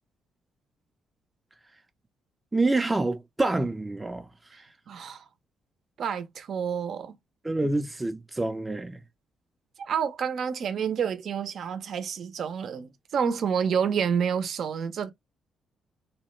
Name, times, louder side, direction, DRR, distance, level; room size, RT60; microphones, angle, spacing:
voice 1, 2.5-4.3 7.4-9.0, right 2 dB, 15° right, 0.5 m, -27 dB
voice 2, 4.9-5.2 6.0-7.1 9.8-15.1, right 7 dB, 60° right, 0.6 m, -29 dB
2.9 x 2.2 x 3.0 m
cardioid pair, 90°, 0 cm